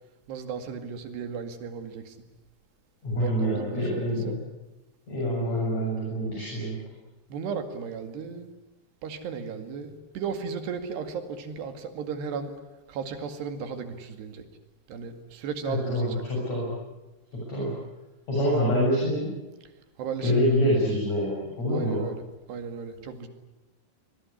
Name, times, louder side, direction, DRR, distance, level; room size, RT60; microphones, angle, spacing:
voice 1, 0.3-2.2 3.2-4.4 7.3-8.5 9.0-12.5 12.9-14.4 14.9-16.2 20.0-20.5 21.7-22.2 22.5-23.3, right 6 dB, 75° right, 8 dB, 4.3 m, -35 dB
voice 2, 3.0-4.4 5.1-6.8 15.7-16.7 17.3-17.7 18.3-19.3 20.2-21.3 21.6-22.0, equal, 40° left, -4 dB, 8.6 m, -26 dB
26.0 x 22.0 x 9.9 m, 1.1 s
omnidirectional pair, 4.9 m